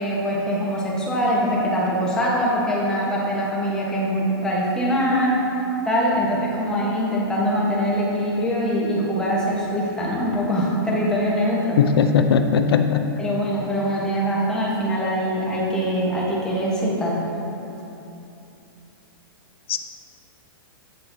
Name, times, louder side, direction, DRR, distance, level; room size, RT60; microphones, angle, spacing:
voice 1, 0.0-5.4 5.8-11.8 13.2-17.2, equal, 5° left, -6 dB, 1.1 m, -23 dB
voice 2, 11.8-13.1 19.7-19.8, left 6 dB, 90° left, 7 dB, 0.4 m, -18 dB
7.7 x 6.6 x 2.7 m, 2.9 s
hypercardioid pair, 150°, 12 cm